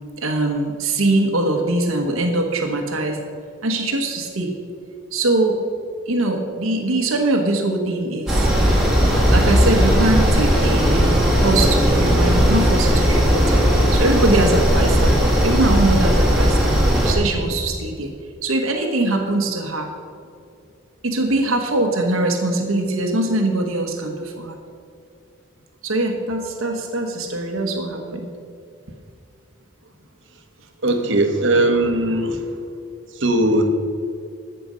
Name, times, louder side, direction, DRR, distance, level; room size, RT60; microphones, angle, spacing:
voice 1, 0.2-3.2 3.6-4.5 5.1-5.6 6.1-8.5 9.3-11.1 11.4-13.7 13.9-15.2 15.4-16.8 17.0-18.1 18.4-19.9 21.0-24.6 25.8-28.3, right 2 dB, 90° right, 3 dB, 1.2 m, -22 dB
sound 1, 8.3-17.1, equal, ahead, 2.0 m, -17 dB
voice 2, 30.8-32.5 33.2-33.7, right 1 dB, 65° right, 6 dB, 1.2 m, -19 dB
14.0 x 6.8 x 5.1 m, 2.4 s
head